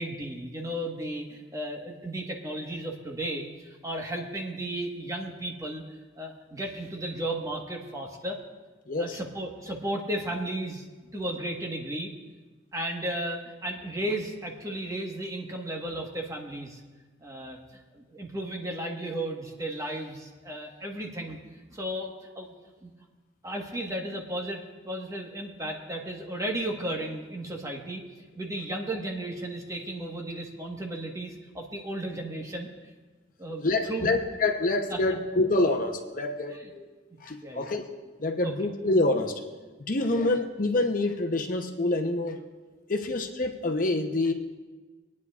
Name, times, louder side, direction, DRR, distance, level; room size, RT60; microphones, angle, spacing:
voice 1, 0.0-5.8 6.1-8.4 9.0-10.9 11.1-12.1 12.7-16.8 17.2-21.4 21.7-22.5 22.8-22.9 23.4-24.6 24.8-28.0 28.3-32.7 33.4-34.1 34.9-35.0 36.5-36.7 37.4-37.7 38.4-38.5 40.1-40.3, right 1 dB, 20° right, 0 dB, 1.3 m, -34 dB
voice 2, 8.9-9.2 33.6-36.9 37.2-37.8 38.2-39.3 39.9-42.4 42.9-44.3, left 2 dB, 50° left, 3 dB, 0.8 m, -26 dB
23.0 x 9.6 x 2.4 m, 1.3 s
head